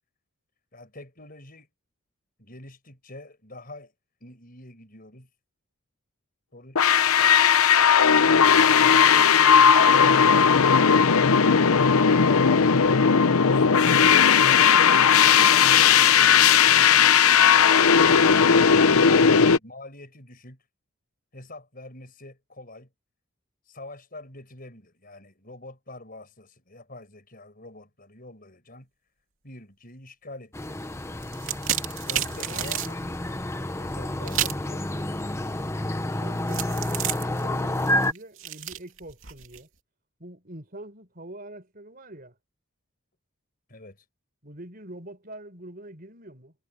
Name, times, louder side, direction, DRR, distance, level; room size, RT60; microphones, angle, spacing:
voice 1, 0.7-1.7 2.4-3.9 4.2-5.3 6.5-6.8 7.0-7.7 8.6-11.3 12.2-17.0 18.9-20.6 21.3-22.9 23.7-28.9 29.4-31.3 32.1-33.5 33.8-34.8 43.7-44.0, left 2 dB, 40° left, 5.5 m, -45 dB
sound 1, 6.8-19.6, left 7 dB, 75° left, 0.8 m, -17 dB
sound 2, 30.5-38.1, left 1 dB, 10° left, 0.7 m, -30 dB
sound 3, 31.2-32.9 34.3-34.7 36.5-39.6, right 11 dB, 60° right, 3.0 m, -31 dB
voice 2, 32.3-33.0 34.2-34.3 36.2-36.8 37.2-39.7 40.2-42.4 44.4-46.5, right 1 dB, 40° right, 4.6 m, -44 dB
head